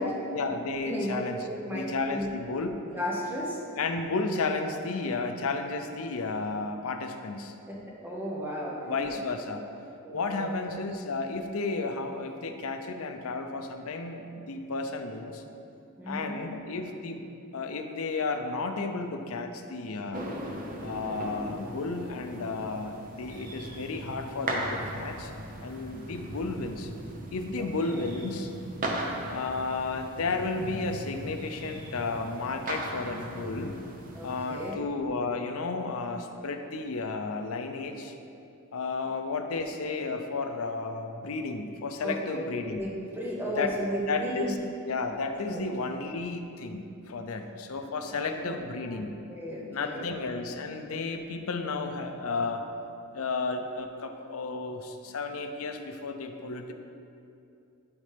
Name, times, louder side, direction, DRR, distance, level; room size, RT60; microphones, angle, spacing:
voice 1, 0.0-2.7 3.8-7.5 8.9-9.7 10.1-15.4 16.1-17.3 17.5-20.3 20.8-25.3 25.6-26.9 27.3-28.5 29.3-33.7 34.2-38.1 38.7-42.9 43.6-43.7 44.1-44.6 44.8-49.2 49.7-52.6 53.1-56.7, left 3 dB, 75° left, 6 dB, 0.6 m, -33 dB
voice 2, 0.8-2.3 2.9-3.6 7.7-9.2 10.0-10.5 16.0-16.6 27.6-28.0 34.1-34.8 42.0-42.4 42.7-44.5 45.5-45.6 48.1-49.0 49.3-50.1, equal, 10° right, -3 dB, 1.0 m, -35 dB
sound 1, 20.1-34.7, right 1 dB, 40° right, 0.8 m, -38 dB
12.0 x 4.1 x 3.4 m, 2.6 s
head